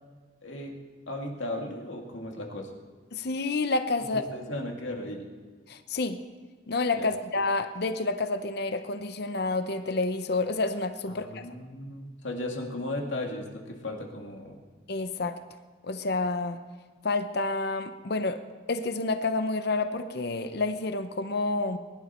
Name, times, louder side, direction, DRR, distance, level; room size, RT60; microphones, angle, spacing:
voice 1, 0.4-0.7 1.1-2.7 4.1-5.3 7.0-7.1 11.2-14.6, left 1 dB, 80° left, 1 dB, 2.2 m, -36 dB
voice 2, 3.1-4.2 5.7-6.2 6.7-11.4 14.9-15.4 15.8-16.6 17.0-18.4 18.7-21.8, left 3 dB, 55° left, 10 dB, 0.7 m, -29 dB
22.0 x 11.5 x 4.4 m, 1.5 s
head